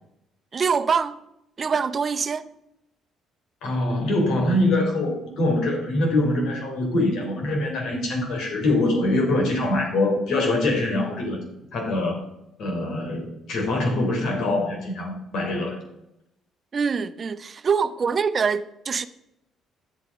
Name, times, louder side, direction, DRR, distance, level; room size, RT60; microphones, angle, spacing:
voice 1, 0.5-1.2 1.6-2.5 16.7-19.1, right 6 dB, 45° right, 0.7 m, -24 dB
voice 2, 3.6-11.4 11.7-12.2 12.6-15.8, left 2 dB, 70° left, 3.7 m, -24 dB
10.5 x 8.4 x 5.3 m
supercardioid pair, 60°, 0 cm